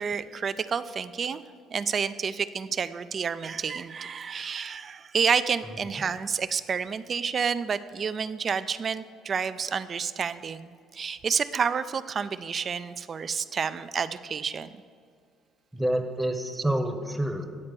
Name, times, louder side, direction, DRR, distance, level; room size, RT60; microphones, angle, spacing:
voice 1, 0.0-1.4 1.7-14.7, right 6 dB, 40° right, 13 dB, 0.4 m, -29 dB
voice 2, 15.7-17.5, right 1 dB, ahead, 5 dB, 0.9 m, -28 dB
9.6 x 4.3 x 6.8 m, 2.2 s
cardioid pair, 95°, 0 cm